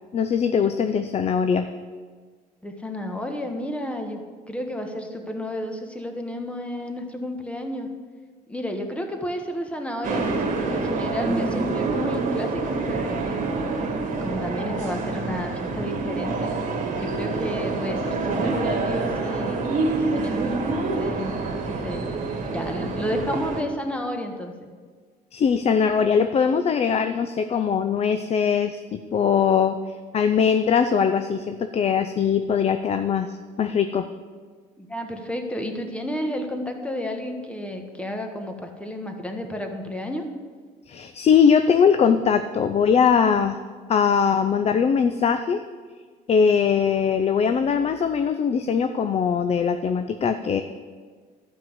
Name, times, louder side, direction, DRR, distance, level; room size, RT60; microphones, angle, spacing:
voice 1, 0.1-1.7 25.3-29.8 30.1-34.1 40.9-43.6 43.9-45.6 46.3-50.6, left 6 dB, 40° left, 9 dB, 0.5 m, -21 dB
voice 2, 2.6-4.2 4.5-7.9 8.5-13.3 14.2-16.5 17.0-19.6 20.0-22.1 22.5-24.5 34.8-40.3, left 1 dB, 5° left, 4 dB, 1.5 m, -31 dB
sound 1, 10.0-23.6, right 3 dB, 50° right, 2.0 m, -27 dB
12.0 x 5.5 x 7.9 m, 1.5 s
cardioid pair, 110°, 17 cm